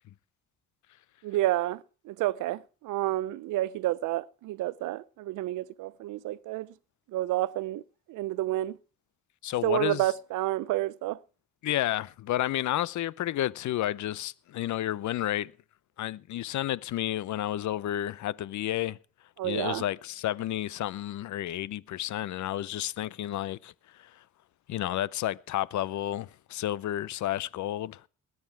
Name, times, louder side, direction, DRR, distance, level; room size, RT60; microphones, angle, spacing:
voice 1, 1.2-6.7 7.1-7.8 8.1-8.8 9.6-11.2 19.4-19.8, right 15 dB, 85° right, 0.7 m, -30 dB
voice 2, 9.4-10.1 11.6-15.5 16.0-19.0 19.4-23.7 24.0-24.1 24.7-28.0, left 13 dB, 70° left, 0.8 m, -31 dB
20.0 x 9.7 x 4.7 m
cardioid pair, 90°, 30 cm